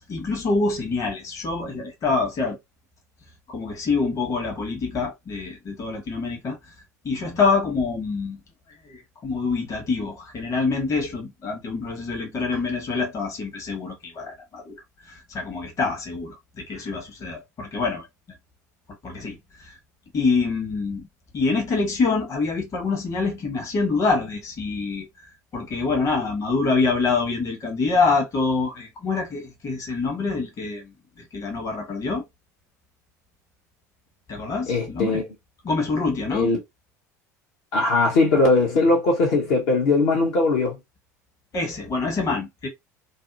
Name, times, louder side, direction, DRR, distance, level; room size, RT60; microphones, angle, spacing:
voice 1, 0.1-2.6 3.5-6.6 7.0-8.4 8.8-14.8 15.0-18.1 19.0-19.8 20.1-21.1 21.3-25.3 25.5-32.2 34.3-35.2 35.6-36.5 41.5-42.7, left 4 dB, 35° left, 1.1 m, -26 dB
voice 2, 34.7-35.2 36.3-36.6 37.7-40.8, left 3 dB, 60° left, 0.9 m, -20 dB
2.7 x 2.1 x 2.6 m
figure-of-eight pair, 70°, 9 cm